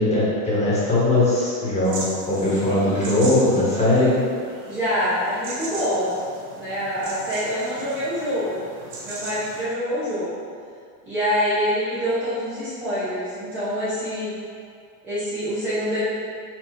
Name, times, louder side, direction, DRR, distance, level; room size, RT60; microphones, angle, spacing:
voice 1, 0.0-2.0 2.3-4.1, left 2 dB, 15° left, -8 dB, 1.0 m, -20 dB
sound 1, 1.8-9.7, right 2 dB, 90° right, 1.3 m, -38 dB
voice 2, 2.7-3.8 4.7-6.1 6.6-8.6 9.0-10.3 11.0-14.3 15.0-16.1, equal, 5° right, -14 dB, 0.3 m, -26 dB
4.4 x 2.4 x 4.4 m, 2.3 s
supercardioid pair, 150°, 48 cm